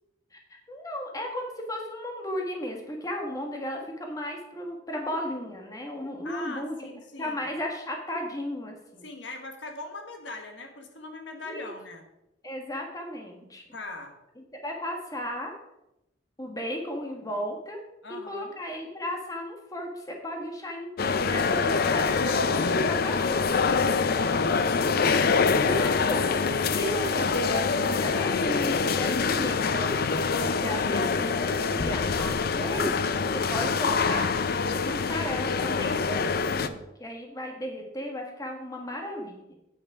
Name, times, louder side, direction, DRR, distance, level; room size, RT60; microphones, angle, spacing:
voice 1, 0.3-6.9 7.2-9.0 11.4-11.7 12.4-13.6 14.6-15.5 16.4-17.8 18.3-20.9 21.3-23.5 25.5-30.0 30.6-34.3 34.8-39.5, left 1 dB, 20° left, 1 dB, 1.4 m, -35 dB
voice 2, 6.2-7.4 9.0-12.0 13.7-14.1 18.0-18.5 24.2-25.5, left 2 dB, 65° left, 4 dB, 1.3 m, -41 dB
sound 1, 21.0-36.7, left 5 dB, 50° left, 0.5 m, -25 dB
8.7 x 7.4 x 4.8 m, 0.88 s
head